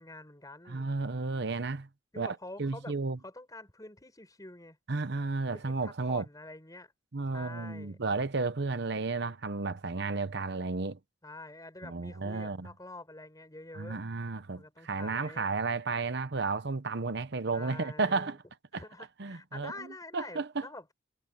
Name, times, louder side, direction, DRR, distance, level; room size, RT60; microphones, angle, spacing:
voice 1, 0.0-0.9 2.1-3.0 3.2-4.8 5.5-6.9 7.3-8.0 11.2-14.0 14.5-15.5 17.5-18.4 18.7-20.9, left 2 dB, 20° left, 5.8 m, -47 dB
voice 2, 0.7-1.9 2.2-3.2 4.9-6.2 7.1-11.0 11.8-12.7 13.7-18.4 18.7-18.8 19.2-19.9 20.1-20.7, right 3 dB, 65° right, 0.9 m, -33 dB
head